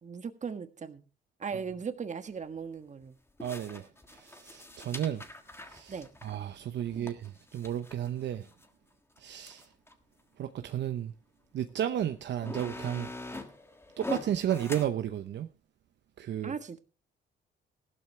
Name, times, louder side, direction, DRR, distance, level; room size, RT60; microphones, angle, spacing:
voice 1, 0.0-1.0 1.4-3.2 5.9-6.1 6.9-7.2 16.4-16.8, right 6 dB, 35° right, 1.5 m, -38 dB
sound 1, 2.2-2.3 3.4-8.7 9.2-9.3 9.4-9.9 10.7-10.8 11.7-11.8 12.2-14.9, left 2 dB, 10° left, 1.6 m, -43 dB
voice 2, 3.4-3.9 4.1-5.2 5.7-5.9 6.2-8.4 9.2-9.6 10.4-11.1 11.5-13.1 14.0-15.5 16.2-16.5, right 10 dB, 65° right, 0.8 m, -33 dB
15.0 x 12.5 x 3.3 m
cardioid pair, 90°, 20 cm